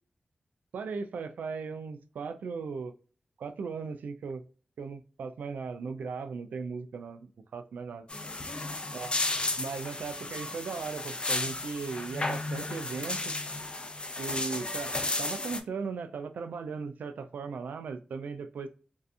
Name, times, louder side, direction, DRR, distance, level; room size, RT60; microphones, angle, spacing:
voice 1, 0.7-2.9 3.4-4.4 4.8-8.1 8.9-9.2 9.6-13.3 14.2-18.7, right 5 dB, 85° right, 0.3 m, -37 dB
sound 1, 8.1-15.6, left 2 dB, 35° left, 0.6 m, -33 dB
2.6 x 2.3 x 2.4 m
cardioid pair, 45°, 3 cm